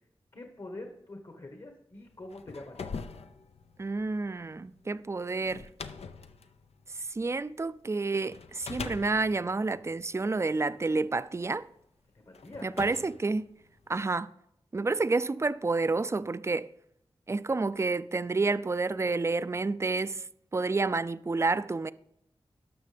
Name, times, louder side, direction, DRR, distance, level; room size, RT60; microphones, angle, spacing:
voice 1, 0.3-3.0 12.2-12.7, left 2 dB, 50° left, 1.4 m, -45 dB
sound 1, 2.1-7.7 8.3-10.8 11.6-11.7 12.3-14.0, left 5 dB, 80° left, 0.6 m, -43 dB
voice 2, 3.8-5.7 7.1-11.7 12.6-13.5 13.9-14.3 14.7-16.7 17.3-20.3 20.5-21.9, right 3 dB, 25° right, 0.4 m, -29 dB
18.0 x 6.1 x 3.4 m
cardioid pair, 50°, 10 cm